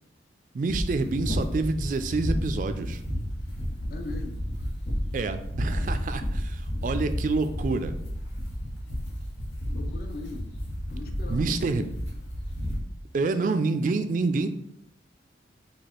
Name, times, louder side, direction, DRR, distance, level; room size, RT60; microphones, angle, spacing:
voice 1, 0.5-3.0 5.1-7.9 11.3-11.9 13.1-14.5, right 3 dB, 45° right, 9 dB, 0.3 m, -27 dB
sound 1, 0.7-12.8, equal, 90° left, 1.2 m, -31 dB
voice 2, 3.9-4.4 9.7-10.5 10.9-11.4 11.8-11.9, left 3 dB, 50° left, 4 dB, 0.6 m, -40 dB
4.8 x 2.4 x 4.3 m, 0.72 s
head